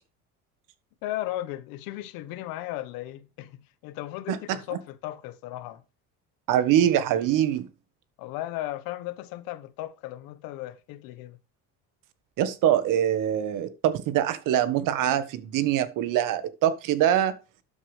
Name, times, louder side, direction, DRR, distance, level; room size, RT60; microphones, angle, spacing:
voice 1, 1.0-5.8 8.2-11.4, left 15 dB, 80° left, 1.2 m, -36 dB
voice 2, 6.5-7.7 12.4-17.3, right 11 dB, 65° right, 1.5 m, -24 dB
12.5 x 7.1 x 3.4 m
cardioid pair, 135°, 34 cm